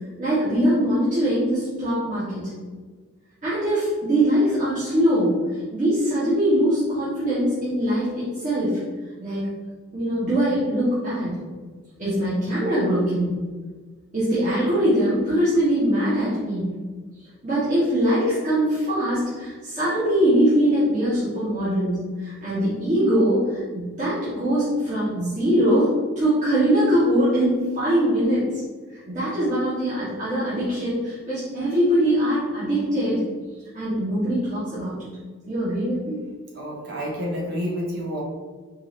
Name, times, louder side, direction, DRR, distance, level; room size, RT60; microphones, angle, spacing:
voice 1, 0.2-2.5 3.4-5.4 5.7-8.8 9.2-9.5 9.9-11.3 12.0-13.3 14.1-16.7 17.4-28.5 28.9-33.2 33.7-35.1 35.5-36.1, equal, 35° right, -12 dB, 1.3 m, -22 dB
voice 2, 36.5-38.2, equal, 55° right, -3 dB, 1.1 m, -29 dB
4.6 x 2.7 x 3.2 m, 1.5 s
head